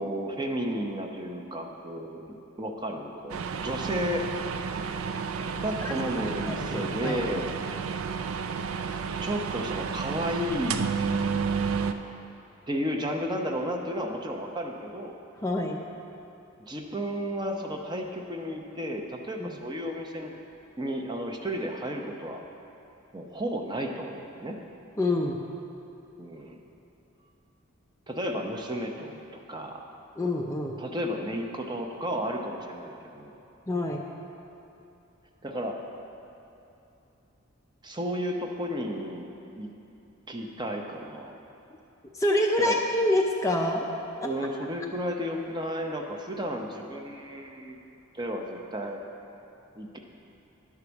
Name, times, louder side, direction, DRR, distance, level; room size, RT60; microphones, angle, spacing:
voice 1, 0.0-2.2 2.6-4.3 5.6-7.5 9.2-11.0 12.7-15.2 16.6-20.4 20.8-22.4 23.1-24.6 26.2-26.6 28.1-29.8 30.8-33.4 35.4-35.8 37.8-39.7 40.3-41.3 42.6-42.8 44.2-47.8 48.1-49.0 49.8-50.0, equal, 20° right, 2 dB, 0.7 m, -33 dB
sound 1, 3.3-11.9, right 5 dB, 85° right, 0.4 m, -31 dB
voice 2, 6.4-7.2 15.4-15.8 19.4-19.5 25.0-25.4 30.2-30.7 33.7-34.1 42.1-43.9, left 1 dB, 15° left, 1 dB, 0.4 m, -26 dB
10.5 x 4.8 x 6.9 m, 2.9 s
head